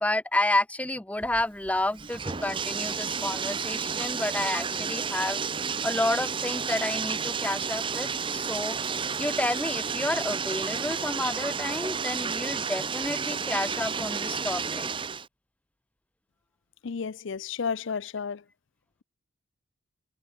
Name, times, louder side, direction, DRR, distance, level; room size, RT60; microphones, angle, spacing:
voice 1, 0.0-5.4 5.8-8.8 9.2-14.9, left 1 dB, 5° left, 0.5 m, -30 dB
Bathtub (filling or washing), 1.2-15.3, right 6 dB, 25° right, 0.7 m, -31 dB
voice 2, 16.8-18.4, left 6 dB, 60° left, 0.5 m, -32 dB
head